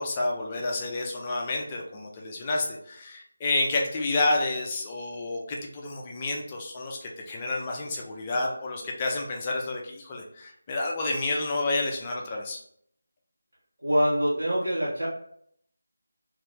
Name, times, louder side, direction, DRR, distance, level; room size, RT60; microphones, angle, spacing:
voice 1, 0.0-12.6, left 2 dB, 20° left, -1 dB, 0.5 m, -30 dB
voice 2, 13.8-15.1, equal, 75° right, -9 dB, 1.1 m, -24 dB
2.7 x 2.6 x 3.5 m, 0.67 s
figure-of-eight pair, 165°, 0 cm